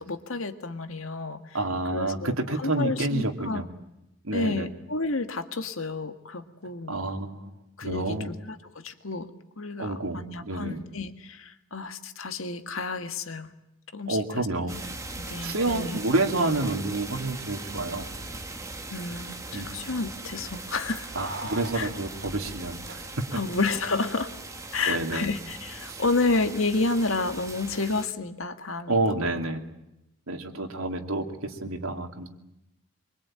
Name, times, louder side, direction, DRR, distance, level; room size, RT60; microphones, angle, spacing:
voice 1, 0.0-1.6 1.9-3.6 4.3-7.0 7.8-9.3 9.6-13.5 13.9-14.8 15.2-16.0 18.9-21.1 21.7-21.9 23.3-24.3 24.7-29.3, left 3 dB, 75° left, 8 dB, 1.8 m, -30 dB
voice 2, 1.5-3.6 4.2-4.7 6.9-7.5 7.8-8.3 9.8-10.8 14.1-14.8 15.4-18.0 19.5-19.7 21.1-23.0 24.9-25.3 25.9-26.0 28.9-29.6 30.3-32.3, right 2 dB, 80° right, 4 dB, 2.9 m, -29 dB
sound 1, 14.7-28.1, right 2 dB, 15° right, 1.9 m, -40 dB
Keys jangling, 21.1-23.5 23.8-23.9, right 2 dB, 50° right, 4.5 m, -39 dB
25.0 x 23.5 x 8.9 m, 0.90 s
head